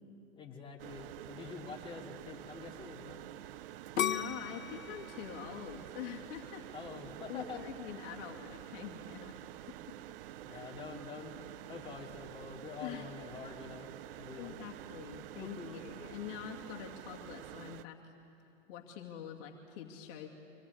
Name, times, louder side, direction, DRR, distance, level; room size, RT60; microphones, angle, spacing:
voice 1, 0.3-3.2 6.7-7.6 10.4-11.4 11.7-13.9 14.2-14.6 15.4-15.8, left 5 dB, 15° left, -1 dB, 3.0 m, -46 dB
sound 1, 0.8-17.8, right 14 dB, 45° right, 0.6 m, -48 dB
voice 2, 3.7-6.7 7.3-9.4 10.5-10.7 12.8-13.1 14.3-18.1 18.7-20.3, left 9 dB, 45° left, 0 dB, 2.4 m, -45 dB
sound 2, 4.0-6.9 7.4-7.9, left 9 dB, 90° left, 0.8 m, -37 dB
25.0 x 18.5 x 9.8 m, 2.9 s
hypercardioid pair, 120°, 39 cm